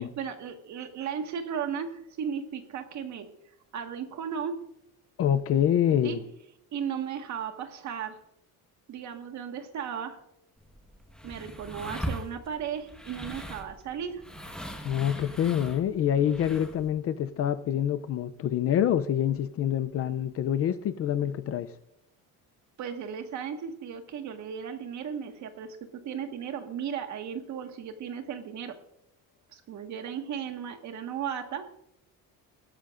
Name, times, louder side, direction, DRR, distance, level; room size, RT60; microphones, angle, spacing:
voice 1, 0.0-3.3 3.7-4.6 6.0-6.2 6.7-8.2 8.9-10.2 11.2-14.2 22.8-28.8 29.5-31.7, right 7 dB, 55° right, 1.6 m, -35 dB
voice 2, 5.2-6.2 14.8-21.7, left 10 dB, 40° left, 0.5 m, -26 dB
sound 1, 10.6-16.9, equal, ahead, 1.3 m, -40 dB
18.5 x 13.0 x 2.5 m
cardioid pair, 165°, 35 cm